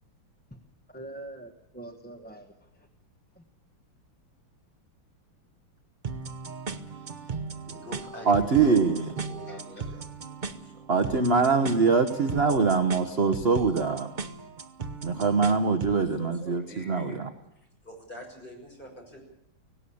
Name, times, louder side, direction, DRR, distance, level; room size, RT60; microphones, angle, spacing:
voice 1, 0.9-2.9 3.3-3.4, right 2 dB, 5° left, 4 dB, 0.8 m, -44 dB
sound 1, 6.0-16.0, right 4 dB, 75° right, 0.4 m, -37 dB
voice 2, 7.6-10.0 10.3-10.9 12.2-12.7 13.0-13.5 15.8-17.2 17.8-19.2, left 1 dB, 20° left, 0 dB, 6.3 m, -45 dB
voice 3, 8.3-9.0 10.9-14.1 15.0-17.3, right 5 dB, 40° right, 7 dB, 0.9 m, -23 dB
18.0 x 17.5 x 8.5 m, 0.82 s
omnidirectional pair, 2.4 m